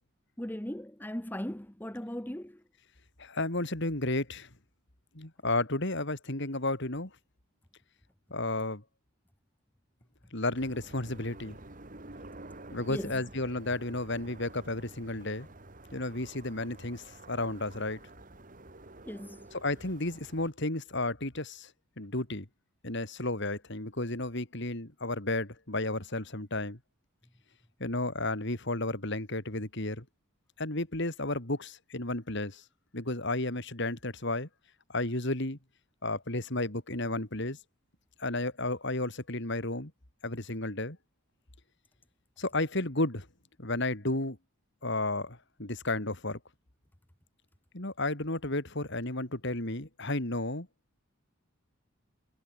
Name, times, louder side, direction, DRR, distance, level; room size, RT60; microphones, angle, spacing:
voice 1, 0.4-2.6 12.9-13.2 19.0-19.5, equal, 10° left, 1.2 m, -38 dB
voice 2, 3.2-4.5 5.1-7.1 8.3-8.8 10.3-11.6 12.7-15.5 15.9-18.0 19.6-21.7 22.0-22.5 22.8-26.8 27.8-30.0 30.6-32.6 32.9-34.5 34.9-35.6 36.0-37.6 38.2-39.9 40.2-41.0 42.4-43.3 43.6-44.4 44.8-46.4 47.7-50.7, left 2 dB, 55° left, 3.4 m, -32 dB
sound 1, 10.5-20.5, right 2 dB, 40° right, 2.3 m, -50 dB
head